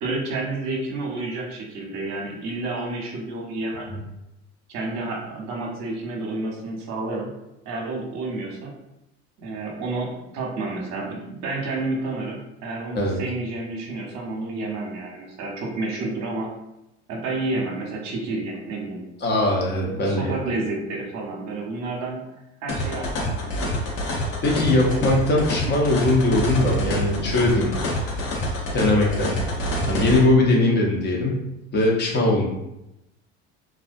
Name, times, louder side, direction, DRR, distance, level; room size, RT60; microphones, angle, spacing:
voice 1, 0.0-3.9 4.7-7.3 7.6-8.7 9.4-16.5 17.1-19.0 19.9-22.2 22.6-23.8, right 2 dB, 55° right, -1 dB, 0.8 m, -30 dB
voice 2, 19.2-20.4 24.4-27.7 28.7-29.3 29.9-31.4 31.7-32.5, left 2 dB, 30° left, -2 dB, 0.8 m, -20 dB
sound 1, 22.7-30.2, equal, 60° left, 1.0 m, -26 dB
2.3 x 2.1 x 2.6 m, 0.90 s
hypercardioid pair, 75°, 33 cm